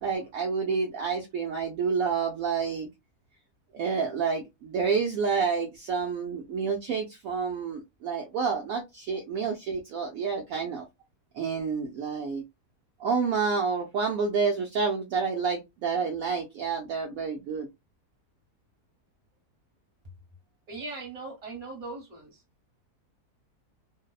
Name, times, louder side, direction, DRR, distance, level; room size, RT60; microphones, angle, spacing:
voice 1, 0.0-2.9 3.7-10.9 11.3-12.4 13.0-17.7, right 5 dB, 70° right, 0.9 m, -29 dB
voice 2, 20.7-22.4, right 3 dB, 30° right, 1.1 m, -39 dB
2.6 x 2.1 x 2.3 m
omnidirectional pair, 1.7 m